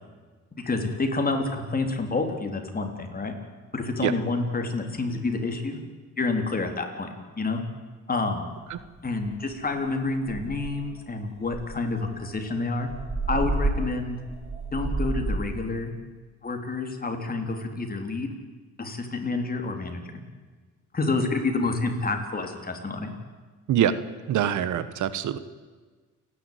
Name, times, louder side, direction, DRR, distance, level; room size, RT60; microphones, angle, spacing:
voice 1, 0.5-3.3 3.7-5.8 6.2-7.6 8.1-8.5 9.0-12.9 13.3-14.2 14.7-15.9 16.4-18.3 18.8-20.0 20.9-23.1, left 3 dB, 30° left, 4 dB, 3.7 m, -28 dB
sound 1, 8.8-8.9 9.3-9.5 9.9-10.0 10.2-10.9 11.5-15.7, right 2 dB, 20° right, 2.4 m, -30 dB
voice 2, 24.3-25.4, right 10 dB, 75° right, 14 dB, 1.3 m, -24 dB
29.0 x 11.0 x 9.5 m, 1.4 s
cardioid pair, 90°, 30 cm